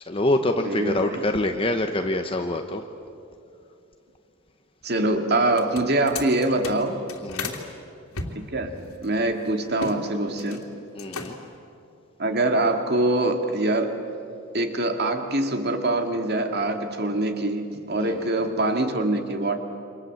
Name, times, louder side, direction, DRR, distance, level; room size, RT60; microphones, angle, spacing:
voice 1, 0.1-2.8 7.2-7.5 10.9-11.4 18.0-18.3, left 1 dB, 25° left, 5 dB, 1.0 m, -25 dB
voice 2, 0.6-1.2 4.8-7.0 8.5-8.7 9.0-10.6 12.2-14.0 14.5-19.6, right 2 dB, 50° right, 5 dB, 2.3 m, -24 dB
sound 1, 5.5-7.6 8.1-10.0 10.3-10.7 11.0-11.6, left 3 dB, 85° left, 2.9 m, -35 dB
29.0 x 25.5 x 7.9 m, 2.6 s
head